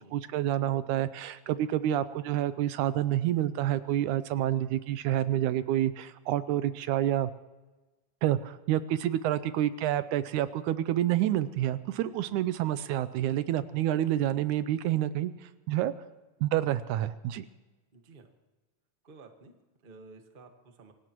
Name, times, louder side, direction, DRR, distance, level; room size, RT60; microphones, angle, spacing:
voice 1, 0.0-7.3 8.2-15.9 16.4-17.5, right 12 dB, 80° right, 13 dB, 2.0 m, -28 dB
voice 2, 17.9-18.3 19.0-20.9, right 3 dB, 35° right, 5 dB, 0.8 m, -53 dB
26.5 x 18.0 x 3.0 m, 1.2 s
omnidirectional pair, 3.7 m